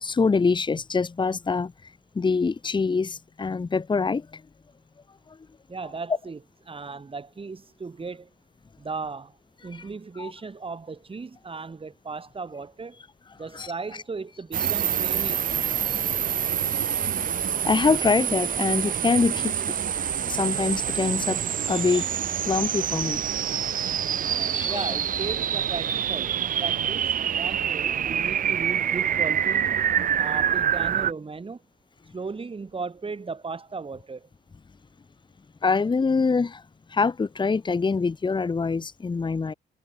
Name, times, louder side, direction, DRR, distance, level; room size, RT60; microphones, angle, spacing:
voice 1, 0.0-1.7 2.1-4.4 10.2-10.3 13.5-13.7 15.9-16.0 17.6-19.7 20.3-21.4 21.6-22.1 22.5-23.2 24.2-24.9 35.6-36.6 36.9-39.5, left 4 dB, 25° left, 1.0 m, -24 dB
voice 2, 5.7-6.4 6.7-8.3 8.8-9.3 9.6-13.0 13.4-15.5 24.6-29.7 30.2-31.6 32.1-34.3, right 4 dB, 25° right, 2.4 m, -36 dB
sound 1, 14.5-31.1, right 9 dB, 45° right, 0.6 m, -26 dB
cardioid pair, 90°, 20 cm